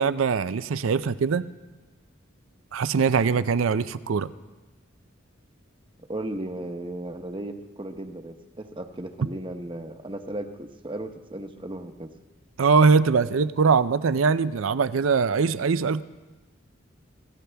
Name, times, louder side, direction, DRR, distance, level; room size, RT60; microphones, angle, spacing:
voice 1, 0.0-1.5 2.7-4.3 12.6-16.0, right 5 dB, 90° right, 15 dB, 0.5 m, -22 dB
voice 2, 6.1-12.1, right 1 dB, 25° right, 7 dB, 0.9 m, -35 dB
24.5 x 16.0 x 3.4 m, 1.2 s
head